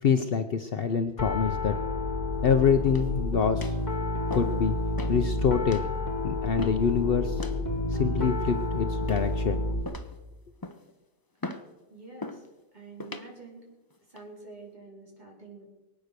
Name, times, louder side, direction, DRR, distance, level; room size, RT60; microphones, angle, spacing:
voice 1, 0.0-1.8 2.4-3.7 4.3-4.7 5.1-5.8 6.2-7.5 7.9-9.6, left 6 dB, 60° left, 7 dB, 0.9 m, -25 dB
Piano, 1.2-9.8, left 2 dB, 40° left, 2.0 m, -30 dB
sound 1, 2.9-3.2 3.6-3.9 4.3-4.6 5.0-5.2 5.7-5.9 6.6-6.9 7.4-7.6 8.2-8.6 9.1-9.5 9.8-10.2 10.6-10.9 11.4-11.7 12.2-12.5 13.0-13.3 13.9-14.2, left 2 dB, 20° left, 0.8 m, -39 dB
voice 2, 11.9-12.4 12.7-13.7 14.1-15.6, right 3 dB, 40° right, -2 dB, 4.5 m, -47 dB
23.0 x 9.2 x 6.8 m, 1.1 s
omnidirectional pair, 1.2 m